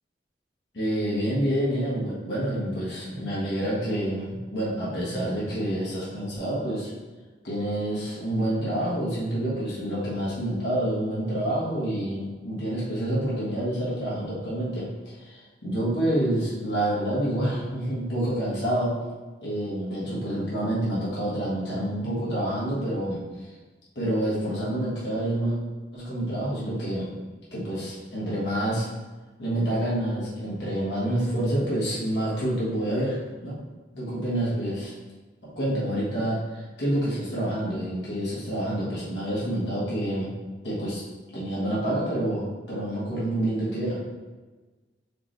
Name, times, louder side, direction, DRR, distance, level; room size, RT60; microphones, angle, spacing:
voice 1, 0.7-6.9 7.4-19.0 19.4-23.5 23.9-25.6 25.9-27.1 27.5-28.9 29.4-33.6 33.9-34.9 35.4-40.3 40.6-41.0 41.3-44.0, right 1 dB, 85° left, -8 dB, 1.4 m, -28 dB
4.9 x 3.1 x 3.3 m, 1.3 s
head